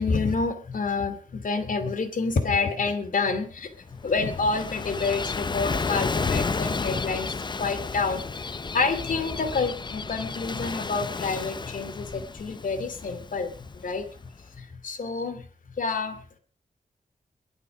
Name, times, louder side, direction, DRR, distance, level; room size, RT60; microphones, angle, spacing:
voice 1, 0.0-14.0 14.5-15.4 15.8-16.4, left 4 dB, 65° left, 9 dB, 2.5 m, -28 dB
Gull seagull / Waves surf, 3.7-14.3, left 4 dB, 30° left, 0.6 m, -32 dB
22.0 x 8.6 x 4.8 m, 0.40 s
wide cardioid pair, 110°, 15 cm